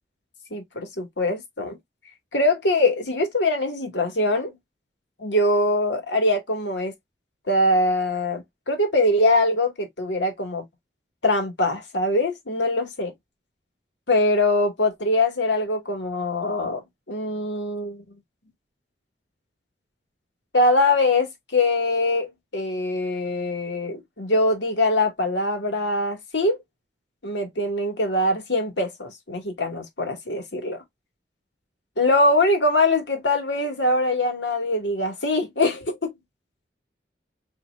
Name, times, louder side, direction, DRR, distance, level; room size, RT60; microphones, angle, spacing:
voice 1, 0.5-1.8 2.3-4.6 5.2-6.9 7.5-10.6 11.2-13.1 14.1-18.0 20.5-26.6 27.2-30.8 32.0-36.1, left 2 dB, 80° left, 2.1 m, -23 dB
5.9 x 3.3 x 2.5 m
head